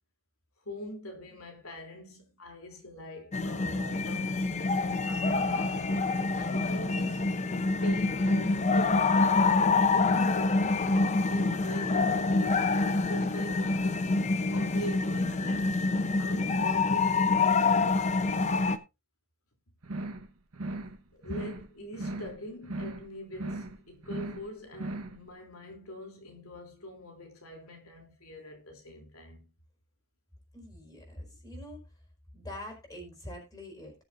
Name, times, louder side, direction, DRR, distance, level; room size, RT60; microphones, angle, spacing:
voice 1, 0.6-4.3 4.8-5.9 6.3-7.3 7.8-9.3 9.9-15.7 16.2-18.0 21.1-29.5, left 1 dB, 80° left, 3.2 m, -44 dB
sound 1, 3.3-18.8, left 3 dB, 35° left, 0.7 m, -26 dB
sound 2, 19.8-20.3 20.5-21.0 21.2-21.7 21.9-22.4 22.6-23.1 23.3-23.8 24.0-24.5 24.7-25.2, right 2 dB, 85° right, 1.3 m, -37 dB
voice 2, 30.5-31.8 32.3-33.9, left 1 dB, 15° left, 4.6 m, -44 dB
19.0 x 7.1 x 2.6 m
head